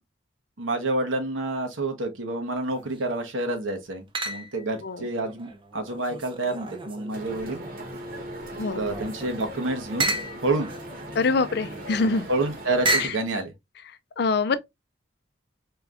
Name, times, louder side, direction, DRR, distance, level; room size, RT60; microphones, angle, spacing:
voice 1, 0.6-7.6 8.7-10.7 12.3-13.5, right 2 dB, 90° right, 1.1 m, -28 dB
sound 1, 2.6-3.2 4.1-4.7 5.2-7.9 8.4-13.3, right 2 dB, 25° right, 0.5 m, -33 dB
sound 2, 7.1-13.1, right 1 dB, 45° right, 1.1 m, -38 dB
voice 2, 11.1-12.3 13.0-13.2 14.2-14.6, left 4 dB, 55° left, 0.4 m, -24 dB
4.4 x 3.4 x 2.5 m
head